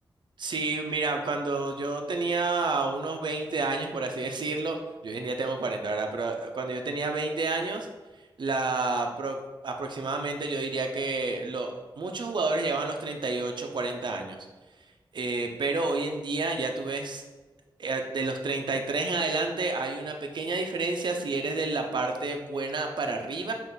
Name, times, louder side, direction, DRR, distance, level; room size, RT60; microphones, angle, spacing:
voice 1, 0.4-4.8 5.0-7.9 8.4-9.4 9.6-14.4 15.1-17.2 17.8-23.5, right 3 dB, 60° right, 4 dB, 0.5 m, -30 dB
5.4 x 2.5 x 3.9 m, 1.2 s
wide cardioid pair, 90°, 9 cm